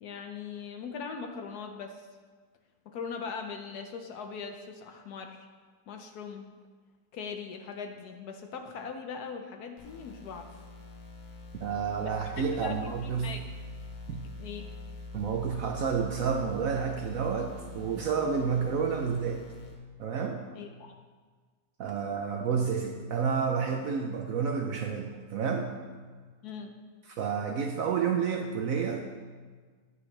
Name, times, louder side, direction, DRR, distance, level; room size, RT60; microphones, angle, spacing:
voice 1, 0.0-2.1 2.9-5.5 5.9-6.5 7.1-10.5 12.0-13.4 14.4-14.7 20.5-21.0 26.4-26.7, left 5 dB, 65° left, 5 dB, 1.0 m, -40 dB
sound 1, 9.8-19.7, left 3 dB, 50° left, 1.3 m, -45 dB
voice 2, 11.6-13.4 14.1-14.2 15.1-19.4 20.0-20.4 21.8-25.7 27.2-29.0, right 6 dB, 75° right, 3 dB, 0.7 m, -30 dB
9.4 x 8.6 x 3.2 m, 1.5 s
omnidirectional pair, 2.1 m